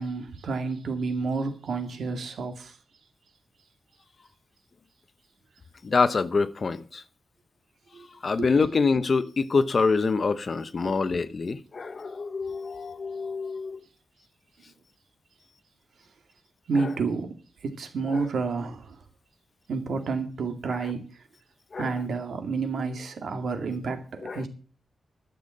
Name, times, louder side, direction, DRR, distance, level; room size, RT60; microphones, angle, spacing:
voice 1, 0.0-2.8 7.9-8.1 8.4-8.5 10.8-11.0 16.7-17.4 17.6-19.0 19.7-21.0 21.8-24.5, right 4 dB, 75° right, 2.2 m, -30 dB
voice 2, 5.8-7.0 8.2-13.8 16.8-16.9 18.1-18.2 21.7-21.9 24.2-24.4, left 4 dB, 40° left, 0.7 m, -26 dB
12.0 x 7.0 x 7.5 m
wide cardioid pair, 165°, 0 cm